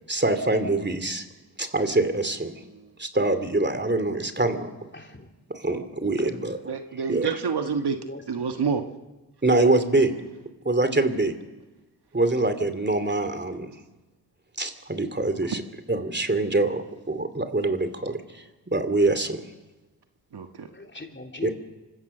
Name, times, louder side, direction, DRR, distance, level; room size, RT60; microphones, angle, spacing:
voice 1, 0.1-1.2 1.6-2.5 3.0-4.7 5.5-6.7 7.1-7.3 9.4-10.1 10.6-11.3 12.1-13.7 14.6-15.6 15.9-19.4 21.4-21.5, right 2 dB, 25° right, 9 dB, 2.7 m, -24 dB
voice 2, 4.9-5.3 8.0-8.3 8.5-8.8 20.7-21.5, left 2 dB, 25° left, 3 dB, 3.3 m, -39 dB
voice 3, 6.7-8.0 8.3-8.8 20.3-20.7, right 6 dB, 60° right, 6 dB, 1.5 m, -28 dB
25.5 x 15.5 x 6.7 m, 1.1 s
supercardioid pair, 45°, 44 cm